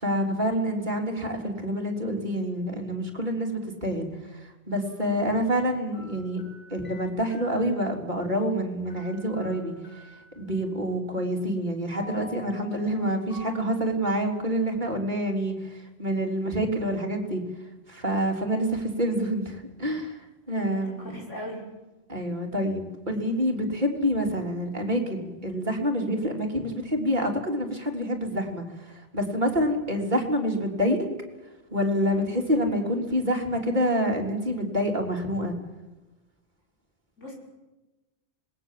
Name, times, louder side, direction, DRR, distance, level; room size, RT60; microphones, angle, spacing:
voice 1, 0.0-4.4 4.7-6.4 6.7-9.7 10.4-15.6 16.0-17.4 17.9-20.2 20.5-21.2 22.1-31.1 31.7-35.5, equal, 40° right, 1 dB, 3.8 m, -27 dB
sound 1, 4.9-5.0 5.9-7.9 8.9-10.5 11.9-14.4, left 2 dB, 45° left, 8.1 m, -48 dB
voice 2, 20.7-21.6 37.2-37.4, equal, 85° left, -2 dB, 6.4 m, -38 dB
26.0 x 21.0 x 7.7 m, 1.1 s
omnidirectional pair, 1.2 m